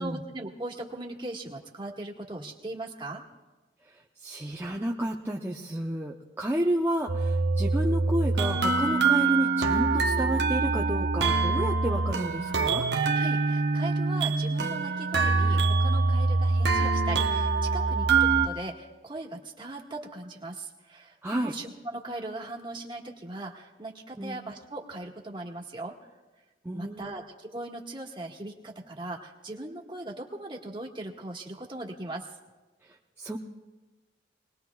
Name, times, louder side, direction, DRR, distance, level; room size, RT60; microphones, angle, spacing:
voice 1, 0.0-3.2 13.1-25.9 26.7-32.3, right 2 dB, 30° right, 0 dB, 1.6 m, -39 dB
voice 2, 4.2-12.9 21.2-21.5 24.2-24.4 26.6-27.1 33.2-33.4, right 1 dB, 15° right, -2 dB, 0.7 m, -31 dB
sound 1, 7.1-18.5, right 4 dB, 70° right, 0.9 m, -24 dB
25.5 x 20.0 x 2.3 m, 1.2 s
head